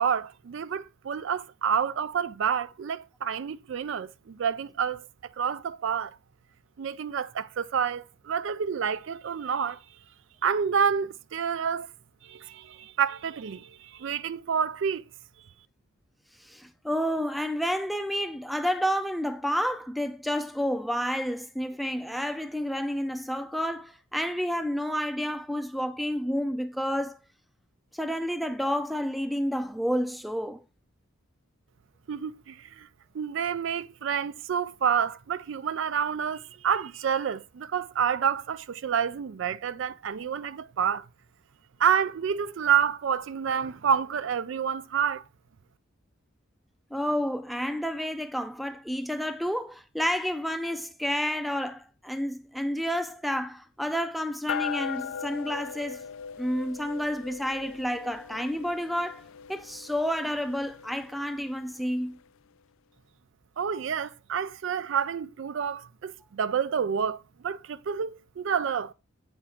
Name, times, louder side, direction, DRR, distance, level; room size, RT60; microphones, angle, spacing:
voice 1, 0.0-5.1 5.4-6.2 6.8-9.8 10.4-11.9 12.2-15.0 32.1-32.9 33.1-41.1 41.8-45.2 63.6-68.9, right 7 dB, 65° right, 0.4 m, -28 dB
voice 2, 16.4-27.2 27.9-30.6 46.9-56.0 56.4-62.2, equal, ahead, 0.4 m, -30 dB
sound 1, 54.5-62.2, left 7 dB, 70° left, 0.4 m, -39 dB
8.6 x 4.3 x 4.9 m
head